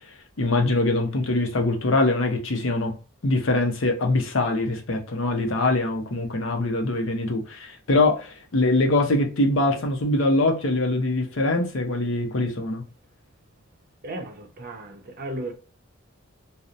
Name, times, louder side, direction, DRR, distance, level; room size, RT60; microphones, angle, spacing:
voice 1, 0.4-2.9 3.2-12.8, left 2 dB, 65° left, 0.6 m, -23 dB
voice 2, 14.0-15.5, right 1 dB, 45° right, 0.6 m, -35 dB
2.8 x 2.0 x 2.4 m
head